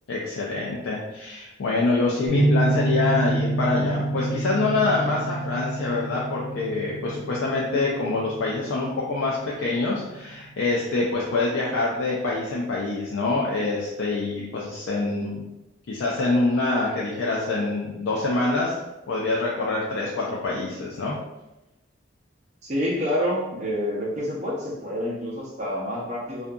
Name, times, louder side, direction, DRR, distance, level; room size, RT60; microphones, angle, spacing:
voice 1, 0.1-15.4 15.9-18.7 19.1-21.2, left 3 dB, 85° left, -4 dB, 0.4 m, -25 dB
sound 1, 2.3-11.0, right 2 dB, 65° left, 1.5 m, -28 dB
voice 2, 22.6-26.5, equal, 35° right, -4 dB, 0.6 m, -28 dB
2.6 x 2.4 x 2.3 m, 0.97 s
head